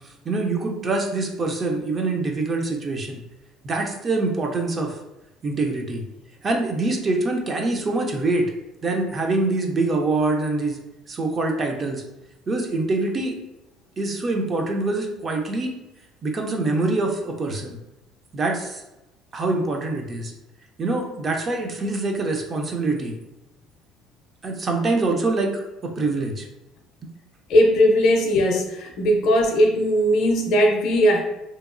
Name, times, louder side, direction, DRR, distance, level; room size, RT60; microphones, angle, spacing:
voice 1, 0.3-3.2 3.6-5.0 5.4-6.0 6.4-8.5 8.8-10.8 11.1-12.0 12.5-13.4 14.0-15.7 16.2-17.8 18.3-18.8 19.3-20.3 20.8-23.2 24.4-26.5, right 2 dB, 25° right, 2 dB, 0.3 m, -24 dB
voice 2, 27.5-31.2, equal, 50° left, 2 dB, 0.5 m, -18 dB
2.8 x 2.3 x 2.4 m, 0.94 s
cardioid pair, 170°, 0 cm